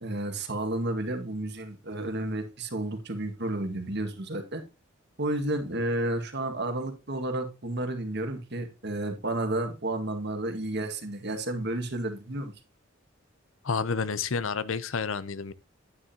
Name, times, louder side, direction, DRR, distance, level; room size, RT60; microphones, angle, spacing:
voice 1, 0.0-4.6 5.2-12.5, right 1 dB, 60° right, 1.9 m, -31 dB
voice 2, 13.6-15.5, left 5 dB, 90° left, 0.7 m, -29 dB
9.8 x 9.7 x 2.8 m
head